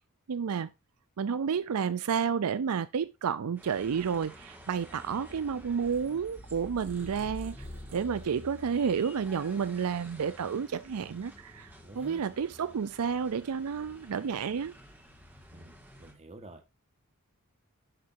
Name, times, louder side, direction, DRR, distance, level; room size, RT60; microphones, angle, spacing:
voice 1, 0.3-0.7 1.2-7.6 7.9-11.7 12.0-14.7, right 6 dB, 80° right, 0.5 m, -31 dB
sound 1, 3.6-16.1, equal, 10° right, 2.1 m, -49 dB
Purr, 5.8-9.3 9.7-10.8, right 1 dB, 55° right, 4.1 m, -52 dB
voice 2, 11.8-12.3 15.5-16.6, right 2 dB, 30° right, 1.4 m, -49 dB
11.0 x 6.6 x 2.6 m
head